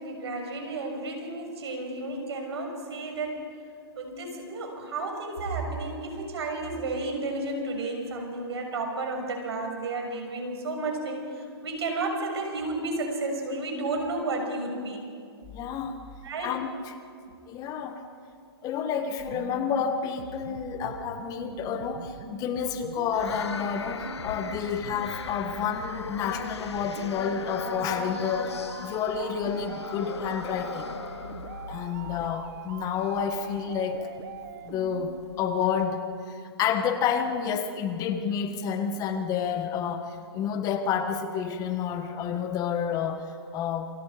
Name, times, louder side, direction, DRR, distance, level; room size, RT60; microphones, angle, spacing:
voice 1, 0.0-3.5 4.0-15.0 16.2-16.6, right 2 dB, 75° right, 2 dB, 6.4 m, -32 dB
voice 2, 15.5-16.0 16.4-17.0 17.5-18.0 18.6-30.9 31.7-34.1 34.6-43.9, left 7 dB, 25° left, 8 dB, 1.5 m, -30 dB
sound 1, 19.2-35.2, right 8 dB, 50° right, 1.5 m, -43 dB
sound 2, 23.1-35.9, left 6 dB, 85° left, 1.3 m, -39 dB
28.5 x 24.5 x 5.1 m, 2.4 s
hypercardioid pair, 135°, 14 cm